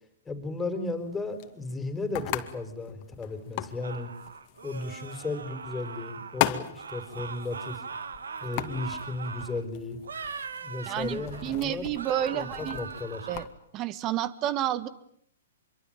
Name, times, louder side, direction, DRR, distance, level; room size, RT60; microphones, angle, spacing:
voice 1, 0.2-4.1 4.6-7.8 8.4-10.0 10.6-11.9 12.2-13.3, left 3 dB, 10° left, 8 dB, 4.9 m, -35 dB
sound 1, 1.0-13.5, left 15 dB, 40° left, 2.3 m, -38 dB
sound 2, 3.8-6.4 6.7-9.6 10.0-11.6 11.9-13.4, right 5 dB, 80° right, 2.1 m, -40 dB
voice 2, 10.9-12.8 13.3-13.5 13.7-14.9, right 12 dB, 30° right, 15 dB, 2.0 m, -30 dB
26.0 x 23.5 x 9.1 m, 0.67 s
hypercardioid pair, 125°, 0 cm